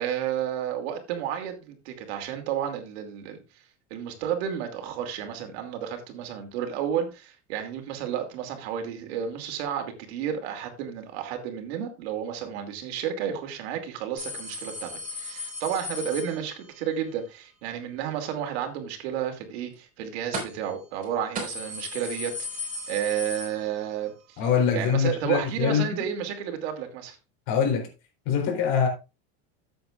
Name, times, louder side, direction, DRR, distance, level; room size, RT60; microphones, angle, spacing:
voice 1, 0.0-3.4 3.9-24.4 24.7-27.2, right 9 dB, 75° right, 2.6 m, -32 dB
sound 1, 14.2-16.9 20.3-20.7 21.0-21.1 21.4-24.1 24.4-24.5 25.5-25.6, left 1 dB, 25° right, 4.5 m, -36 dB
voice 2, 24.4-25.9 27.5-27.9 28.3-28.9, left 7 dB, 60° left, 3.6 m, -23 dB
13.5 x 7.9 x 2.4 m
supercardioid pair, 145°, 32 cm